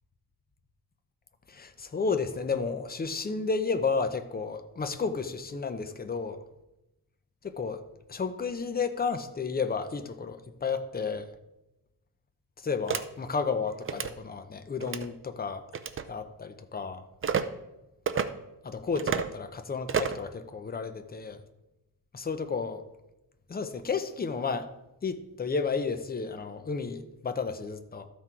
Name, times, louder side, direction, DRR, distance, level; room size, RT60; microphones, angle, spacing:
voice 1, 1.5-6.4 7.4-7.8 8.1-11.3 12.6-15.7 16.1-17.0 18.6-21.4 22.1-22.8 23.5-24.7 25.0-28.0, left 5 dB, 25° left, 9 dB, 0.7 m, -32 dB
sound 1, 12.9-13.0 13.8-14.1 14.8-15.1 15.7-16.0 17.2-17.4 18.1-18.3 19.0-19.3 19.9-20.2, right 7 dB, 35° right, 0.5 m, -29 dB
13.0 x 6.1 x 4.5 m, 0.95 s
wide cardioid pair, 150°, 39 cm